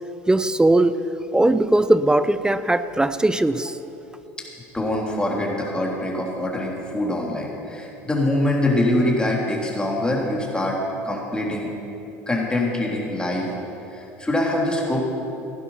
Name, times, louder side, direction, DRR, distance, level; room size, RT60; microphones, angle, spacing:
voice 1, 0.3-1.0 1.3-3.8, right 2 dB, 10° right, 13 dB, 0.6 m, -19 dB
voice 2, 4.7-10.8 11.0-11.7 12.3-13.5 13.9-15.1, left 1 dB, 10° left, -2 dB, 3.4 m, -24 dB
16.0 x 11.0 x 5.8 m, 2.9 s
hypercardioid pair, 75°, 8 cm